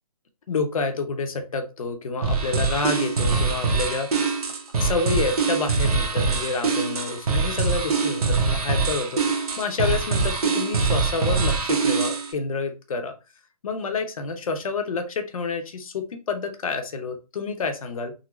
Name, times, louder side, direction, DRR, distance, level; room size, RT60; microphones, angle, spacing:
voice 1, 0.5-4.1 4.8-13.1 13.6-18.1, left 4 dB, 60° left, 6 dB, 0.7 m, -28 dB
sound 1, 2.2-12.3, right 4 dB, 70° right, 0.9 m, -24 dB
3.7 x 2.1 x 3.0 m, 0.30 s
hypercardioid pair, 165°, 20 cm